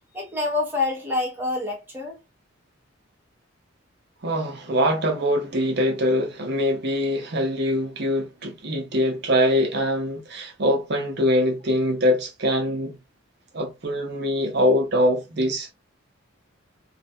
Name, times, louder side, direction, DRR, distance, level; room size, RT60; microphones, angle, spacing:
voice 1, 0.1-2.2, left 3 dB, 10° right, 0.6 m, -27 dB
voice 2, 4.2-13.0 13.5-15.7, equal, 50° right, 0.6 m, -23 dB
2.4 x 2.1 x 2.6 m
head